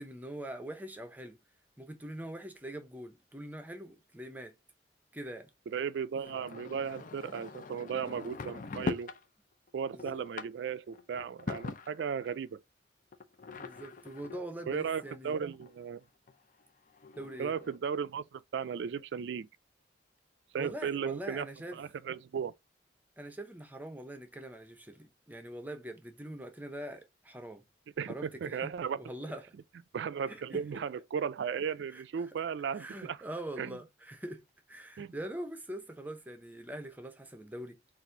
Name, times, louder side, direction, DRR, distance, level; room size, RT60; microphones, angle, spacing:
voice 1, 0.0-1.4 1.8-4.5 5.1-5.5 9.9-10.2 13.6-15.4 17.2-17.5 20.6-21.8 23.2-27.6 28.1-28.7 29.0-29.5 30.3-30.8 31.9-32.0 32.7-34.4 34.7-37.9, right 1 dB, 10° right, 0.7 m, -43 dB
voice 2, 5.7-9.1 9.7-12.6 14.7-16.0 17.4-19.5 20.5-21.5 21.7-22.5 28.0-29.0 29.9-33.2 33.6-33.8 35.0-35.1, right 7 dB, 70° right, 0.3 m, -36 dB
sound 1, 6.2-9.2 9.7-12.3 13.1-15.7 16.3-16.4 16.6-16.7 16.9-17.8, left 3 dB, 45° left, 0.5 m, -42 dB
4.1 x 2.5 x 4.4 m
head